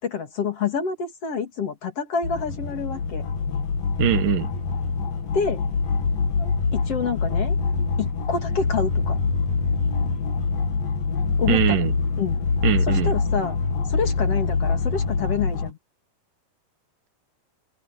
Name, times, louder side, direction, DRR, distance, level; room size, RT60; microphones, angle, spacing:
voice 1, 0.0-3.2 5.3-5.6 6.4-7.6 8.0-9.2 11.4-11.9 12.2-12.5 12.9-13.6 13.9-15.8, left 5 dB, 45° left, 3.3 m, -28 dB
sound 1, 2.2-15.7, left 4 dB, 70° left, 4.2 m, -24 dB
voice 2, 4.0-4.5 11.5-11.9 12.6-13.1, right 13 dB, 75° right, 2.8 m, -22 dB
open air
omnidirectional pair, 4.0 m